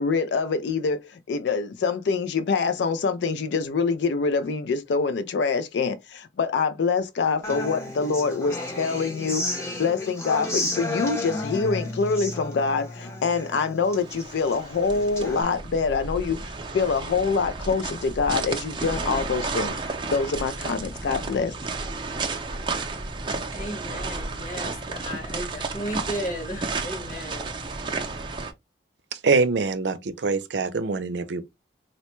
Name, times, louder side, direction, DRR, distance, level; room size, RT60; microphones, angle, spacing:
voice 1, 0.0-21.5, left 4 dB, 80° left, 0.4 m, -25 dB
Human voice / Acoustic guitar, 7.4-15.4, left 2 dB, 15° left, 0.7 m, -32 dB
sound 1, 13.9-28.5, right 3 dB, 25° right, 0.5 m, -32 dB
voice 2, 23.5-27.5, equal, 50° left, 1.6 m, -34 dB
voice 3, 29.1-31.4, right 4 dB, 80° right, 0.5 m, -24 dB
4.1 x 2.2 x 3.0 m
head